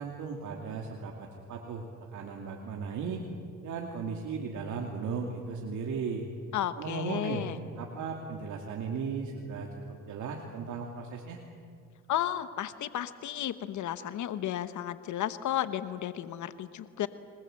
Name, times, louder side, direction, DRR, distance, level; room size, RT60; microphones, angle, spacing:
voice 1, 0.0-1.9 2.1-3.2 3.6-6.3 6.8-7.5 7.8-9.7 10.1-11.4, right 5 dB, 75° right, 1 dB, 2.7 m, -36 dB
voice 2, 6.5-7.6 12.1-17.1, left 11 dB, 75° left, 13 dB, 1.1 m, -33 dB
27.5 x 21.0 x 7.9 m, 2.3 s
cardioid pair, 90°, 30 cm